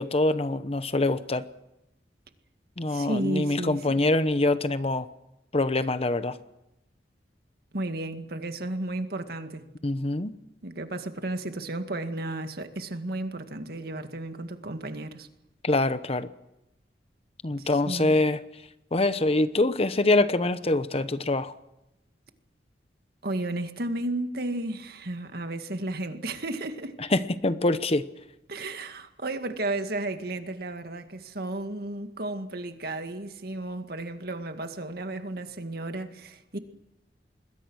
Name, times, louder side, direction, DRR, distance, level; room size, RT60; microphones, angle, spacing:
voice 1, 0.0-1.4 2.8-5.1 5.5-6.4 9.8-10.3 15.6-16.3 17.4-18.4 18.9-21.5 27.1-28.1, left 2 dB, 35° left, 1.0 m, -24 dB
voice 2, 2.9-4.0 7.7-9.7 10.6-15.3 17.6-18.2 23.2-27.0 28.5-36.6, right 2 dB, 60° right, 2.0 m, -33 dB
26.5 x 21.5 x 6.4 m
head